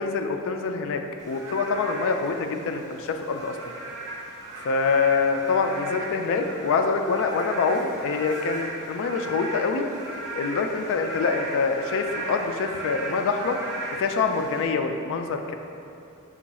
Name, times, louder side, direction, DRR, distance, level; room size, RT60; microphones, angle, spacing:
voice 1, 0.0-3.6 4.6-9.8 10.3-13.6 13.9-15.5, left 4 dB, 60° left, 5 dB, 0.3 m, -25 dB
Frog / Rain, 1.2-14.7, right 2 dB, 60° right, 0.8 m, -37 dB
5.0 x 2.3 x 4.1 m, 2.7 s
head